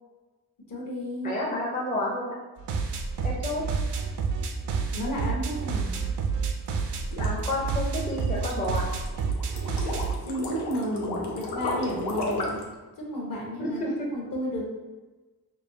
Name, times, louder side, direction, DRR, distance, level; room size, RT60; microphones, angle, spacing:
voice 1, 0.7-1.4 4.5-4.6 4.9-5.9 10.2-12.6 13.0-14.6, equal, 55° left, -3 dB, 1.2 m, -32 dB
voice 2, 1.2-2.3 3.2-3.6 7.2-8.9 13.6-13.9, left 1 dB, 20° left, -3 dB, 0.6 m, -30 dB
sound 1, 2.6-10.1, right 5 dB, 85° right, 0.6 m, -29 dB
sound 2, 6.7-12.7, left 2 dB, 85° left, 0.8 m, -33 dB
5.4 x 2.4 x 2.7 m, 1.2 s
wide cardioid pair, 130°, 39 cm